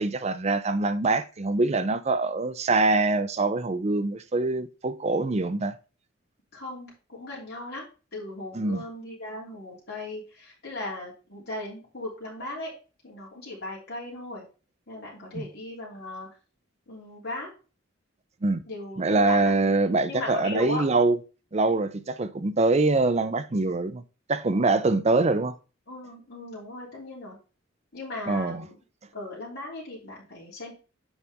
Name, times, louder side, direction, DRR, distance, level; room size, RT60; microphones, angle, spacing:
voice 1, 0.0-5.8 8.5-8.8 15.3-15.4 18.4-18.6 19.0-21.2 21.5-24.0 24.3-25.6 28.3-28.6, right 3 dB, 35° right, 0.5 m, -24 dB
voice 2, 6.5-12.7 13.0-14.4 14.9-16.3 16.9-17.5 18.6-19.6 20.1-20.8 25.9-27.4 27.9-28.8 29.1-30.7, left 2 dB, 55° left, 2.9 m, -37 dB
7.2 x 5.3 x 3.5 m
head